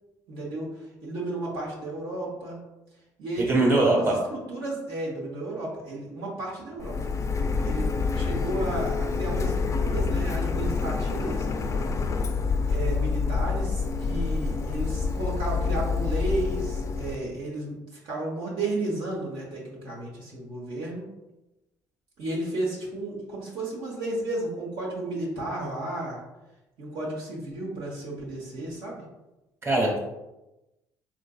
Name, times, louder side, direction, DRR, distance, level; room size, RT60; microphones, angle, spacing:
voice 1, 0.3-2.6 3.2-7.0 7.3-11.6 12.7-17.7 18.0-21.0 22.2-26.2 26.8-28.9, right 2 dB, 70° right, -4 dB, 0.9 m, -33 dB
voice 2, 3.4-4.2 29.6-30.0, right 2 dB, 25° right, -2 dB, 1.2 m, -22 dB
Printer, 6.8-17.1, left 4 dB, 35° left, 0.3 m, -27 dB
3.7 x 2.5 x 2.3 m, 0.99 s
supercardioid pair, 70°, 9 cm